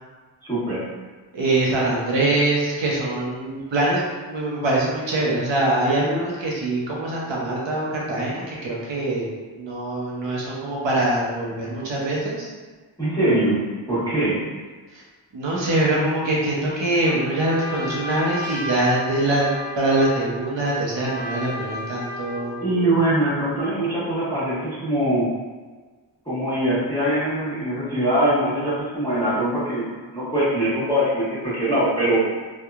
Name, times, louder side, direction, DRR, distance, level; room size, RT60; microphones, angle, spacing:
voice 1, 0.4-0.9 13.0-14.4 22.6-25.3 26.2-32.2, right 1 dB, 10° left, -14 dB, 1.1 m, -22 dB
voice 2, 1.3-4.0 4.3-9.3 9.6-12.5 15.3-19.5 19.8-22.6, right 2 dB, 85° right, -4 dB, 0.8 m, -23 dB
Trumpet, 17.0-22.7, left 2 dB, 35° right, 0.7 m, -34 dB
2.8 x 2.3 x 2.3 m, 1.4 s
wide cardioid pair, 75°, 44 cm